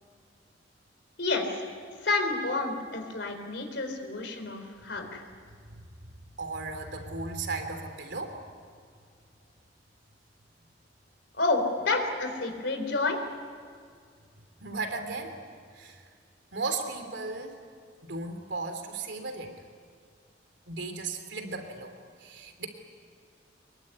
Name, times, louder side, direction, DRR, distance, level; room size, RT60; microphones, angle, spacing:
voice 1, 1.2-1.7 2.0-5.2 11.3-13.2, left 3 dB, 70° left, 4 dB, 4.0 m, -29 dB
voice 2, 6.4-8.4 14.6-15.4 15.7-16.0 16.5-17.6 18.0-19.5 20.7-21.9 22.2-22.7, right 3 dB, 75° right, 6 dB, 3.1 m, -35 dB
24.5 x 22.5 x 9.8 m, 2.1 s
head